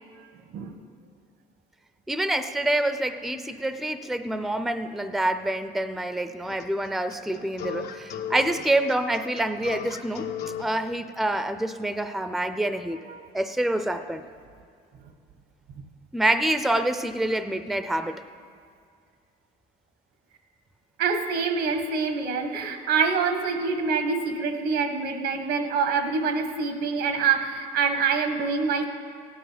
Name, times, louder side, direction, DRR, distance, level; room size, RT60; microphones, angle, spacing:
voice 1, 2.1-10.3 10.6-13.0 13.3-14.2 16.1-18.2, right 1 dB, ahead, 10 dB, 0.5 m, -27 dB
sound 1, 6.5-10.7, left 7 dB, 75° left, 1.0 m, -35 dB
voice 2, 21.0-28.9, right 5 dB, 80° right, 7 dB, 1.3 m, -25 dB
16.5 x 9.9 x 5.1 m, 2.2 s
cardioid pair, 110°, 17 cm